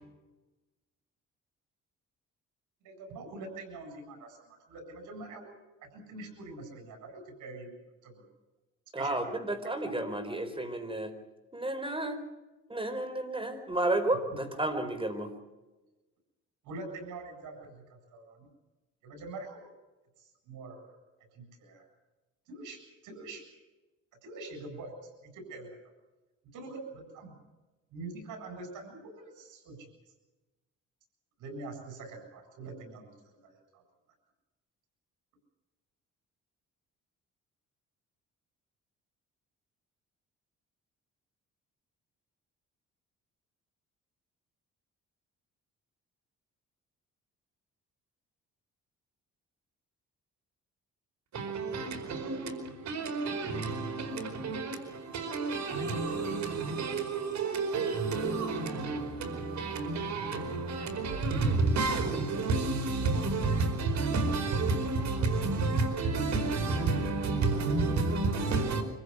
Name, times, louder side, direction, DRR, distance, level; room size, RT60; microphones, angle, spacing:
voice 1, 2.8-5.4 5.9-7.7 8.0-8.2 9.0-9.3 16.6-18.5 19.0-19.7 20.2-21.0 21.3-21.8 22.5-23.4 24.2-25.8 26.5-27.3 27.9-29.9 31.4-33.8, right 3 dB, 90° right, 7.8 m, -45 dB
voice 2, 8.9-11.1 11.5-12.2 12.7-15.3, right 1 dB, 15° right, 4.4 m, -32 dB
voice 3, 51.3-68.8, right 3 dB, 65° right, 4.9 m, -30 dB
25.5 x 15.5 x 8.3 m
cardioid pair, 90°, 30 cm